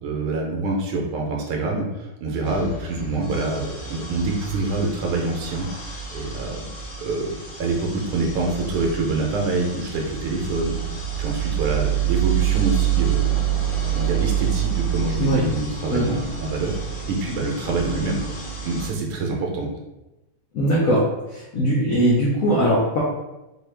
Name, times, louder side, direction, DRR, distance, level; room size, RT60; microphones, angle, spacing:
voice 1, 0.0-6.6 7.0-13.4 13.9-16.8 17.1-18.3 18.6-19.7, right 3 dB, 75° right, 0 dB, 1.6 m, -26 dB
sound 1, 2.4-18.9, right 10 dB, 60° left, 1.6 m, -27 dB
voice 2, 20.5-21.0 21.3-23.0, right 1 dB, 85° left, -4 dB, 0.7 m, -20 dB
4.3 x 2.3 x 3.3 m, 0.98 s
omnidirectional pair, 2.4 m